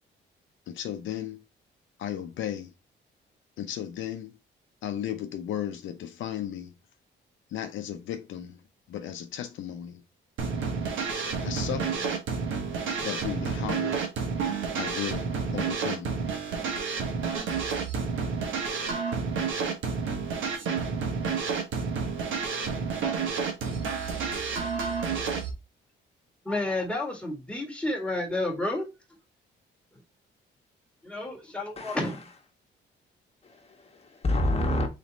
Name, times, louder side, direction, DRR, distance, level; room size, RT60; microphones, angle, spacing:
voice 1, 0.7-1.4 2.0-2.7 3.6-4.4 4.8-6.7 7.5-8.6 8.9-10.0 11.4-12.1 13.0-14.0 14.7-16.2 16.7-16.8, left 10 dB, 75° left, 0.6 m, -35 dB
sound 1, 10.4-25.5, right 5 dB, 75° right, 1.2 m, -30 dB
voice 2, 26.4-28.9 31.0-32.2, left 2 dB, 5° left, 1.7 m, -30 dB
voice 3, 31.8-32.2 33.4-34.9, left 1 dB, 30° left, 1.3 m, -28 dB
4.1 x 3.1 x 4.0 m
cardioid pair, 90°, 20 cm